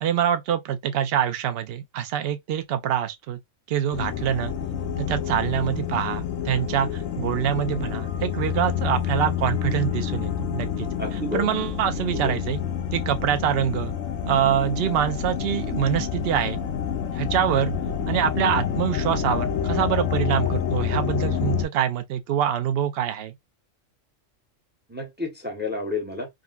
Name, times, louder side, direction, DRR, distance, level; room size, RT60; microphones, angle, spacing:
voice 1, 0.0-3.4 3.7-4.5 5.0-12.6 12.9-13.9 14.3-16.6 17.1-17.7 18.1-23.3, right 10 dB, 60° right, 0.7 m, -25 dB
sound 1, 3.9-21.7, left 8 dB, 75° left, 0.9 m, -28 dB
voice 2, 11.0-11.5 12.2-12.4 24.9-26.3, left 2 dB, 10° right, 0.6 m, -30 dB
3.8 x 2.1 x 2.2 m
omnidirectional pair, 1.3 m